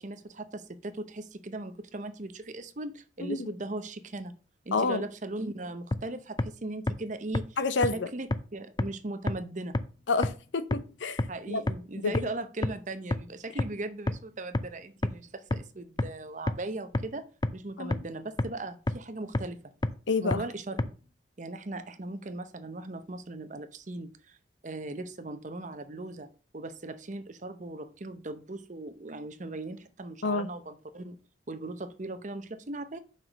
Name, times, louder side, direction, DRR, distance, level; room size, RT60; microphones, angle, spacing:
voice 1, 0.0-4.3 4.6-7.6 7.9-9.8 11.3-17.2 17.5-19.7 20.2-20.9 21.4-24.4 24.6-26.3 26.5-31.2 31.5-33.0, right 2 dB, 40° right, 0.7 m, -38 dB
voice 2, 4.7-5.0 7.6-8.1 10.1-11.2 11.5-11.6 12.0-12.1 17.8-18.0 20.1-20.4 30.2-30.5, left 3 dB, 75° left, 0.7 m, -28 dB
sound 1, 5.9-6.0 6.4-6.5 6.9-7.0 7.3-7.4 7.8-7.9 8.3-8.4 8.8-8.9 9.3-9.4 9.7-9.8 10.2-10.3 10.7-10.8 11.2-11.3 11.7-11.8 12.1-12.2 12.6-12.7 13.1-13.2 13.6-13.7 14.1-14.2 14.5-14.6 15.0-15.1 15.5-15.6 16.0-16.1 16.5-16.6 16.9-17.0 17.4-17.5 17.9-18.0 18.4-18.5 18.9-19.0 19.3-19.4 19.8-19.9 20.3-20.4 20.8-20.9, left 2 dB, 20° left, 0.4 m, -26 dB
5.7 x 4.9 x 6.5 m
head